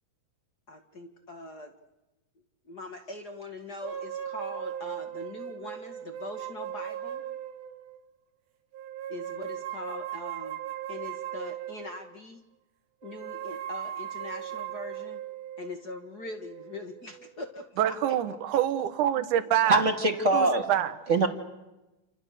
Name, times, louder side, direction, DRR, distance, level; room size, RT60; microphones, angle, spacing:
voice 1, 0.7-1.7 2.7-7.2 9.1-10.6 10.9-12.4 13.0-15.2 15.6-18.2, left 2 dB, 35° left, 5 dB, 1.7 m, -42 dB
sound 1, 3.8-8.0 8.7-12.2 13.0-17.4, right 11 dB, 85° right, 3.4 m, -38 dB
voice 2, 17.8-19.8 20.3-20.9, right 11 dB, 65° right, 11 dB, 2.6 m, -26 dB
voice 3, 19.7-20.7 21.1-21.3, right 2 dB, 25° right, 5 dB, 1.8 m, -23 dB
29.5 x 27.5 x 6.7 m, 1.0 s
omnidirectional pair, 4.1 m